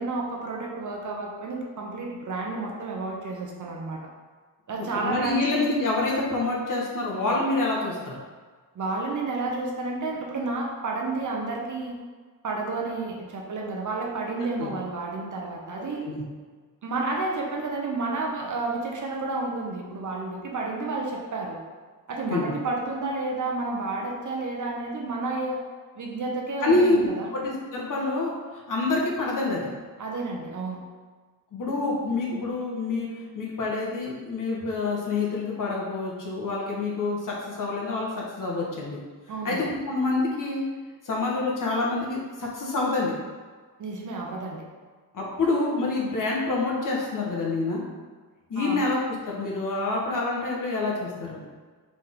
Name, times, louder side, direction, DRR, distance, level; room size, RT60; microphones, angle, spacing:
voice 1, 0.0-4.0 4.7-5.6 8.7-12.0 12.4-16.0 16.8-21.6 22.1-25.6 26.0-27.3 30.0-30.8 39.3-39.6 43.8-44.6 48.6-48.8, right 3 dB, 55° right, -1 dB, 0.9 m, -31 dB
voice 2, 4.7-8.1 14.6-14.7 16.0-16.2 22.3-22.5 26.6-28.3 28.7-29.7 31.5-33.1 33.3-39.0 39.4-40.6 41.0-43.1 45.1-47.8 48.5-51.4, left 3 dB, 60° left, -3 dB, 1.1 m, -27 dB
4.1 x 3.6 x 3.5 m, 1.5 s
wide cardioid pair, 115°, 37 cm